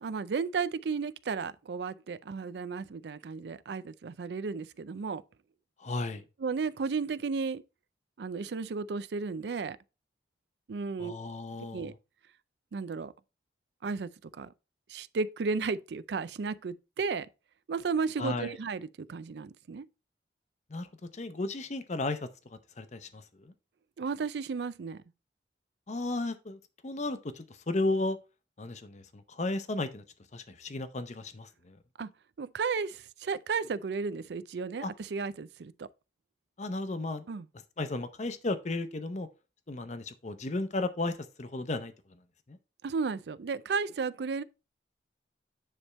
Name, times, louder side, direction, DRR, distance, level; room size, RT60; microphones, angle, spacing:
voice 1, 0.0-5.2 6.4-7.6 8.2-9.8 10.7-11.1 11.7-11.9 12.7-13.1 13.8-14.5 14.9-17.3 17.7-19.9 24.0-25.0 32.0-32.1 32.4-35.9 37.3-37.5 42.8-44.4, right 5 dB, 70° right, 0.4 m, -34 dB
voice 2, 5.8-6.2 11.0-11.9 18.2-18.6 20.7-20.9 21.1-22.3 22.8-23.5 25.9-28.2 28.6-30.0 30.3-31.8 34.8-34.9 36.6-37.3 37.8-39.3 39.7-41.9 42.5-42.6, left 2 dB, 40° left, 0.7 m, -34 dB
9.9 x 3.5 x 4.1 m
head